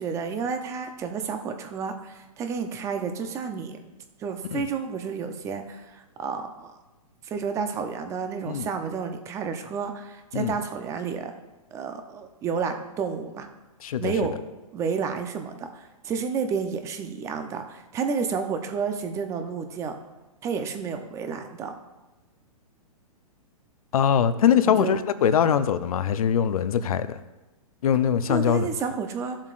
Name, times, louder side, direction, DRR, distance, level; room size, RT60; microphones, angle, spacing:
voice 1, 0.0-3.8 4.2-6.8 7.2-11.3 11.7-13.5 14.0-14.3 14.7-20.0 20.4-21.8 24.6-25.0 28.3-29.4, right 6 dB, 15° right, 0.6 m, -31 dB
voice 2, 13.8-14.1 23.9-27.2 27.8-28.7, left 8 dB, 70° left, 0.7 m, -22 dB
15.0 x 7.3 x 2.5 m
hypercardioid pair, 150°, 19 cm